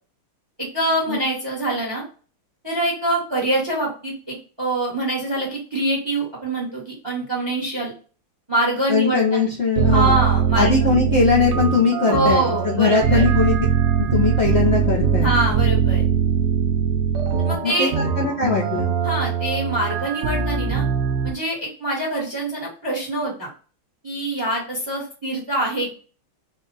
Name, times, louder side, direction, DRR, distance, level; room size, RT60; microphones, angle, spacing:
voice 1, 0.6-2.0 2.6-7.9 8.5-9.5 9.9-10.7 12.0-13.2 15.2-16.0 17.4-17.9 19.0-20.8 21.2-23.5 24.0-25.9, right 1 dB, 15° right, -3 dB, 1.1 m, -24 dB
voice 2, 8.9-10.2 10.5-13.5 14.0-15.3 17.6-17.9 18.2-18.9, left 5 dB, 55° left, -4 dB, 0.7 m, -20 dB
sound 1, 9.8-21.3, right 7 dB, 65° right, 0.9 m, -21 dB
4.3 x 2.4 x 3.9 m, 0.39 s
omnidirectional pair, 2.3 m